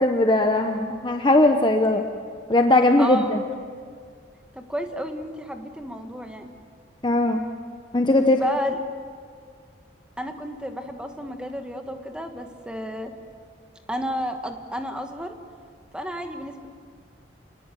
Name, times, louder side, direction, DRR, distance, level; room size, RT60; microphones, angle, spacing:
voice 1, 0.0-2.0 2.5-3.4 7.0-7.4 7.9-8.4, left 2 dB, 25° left, 4 dB, 0.9 m, -19 dB
voice 2, 3.0-3.4 4.5-6.5 8.2-8.8 10.2-13.1 13.9-15.3 15.9-16.7, equal, 5° right, 5 dB, 1.5 m, -31 dB
28.5 x 20.0 x 7.6 m, 2.1 s
head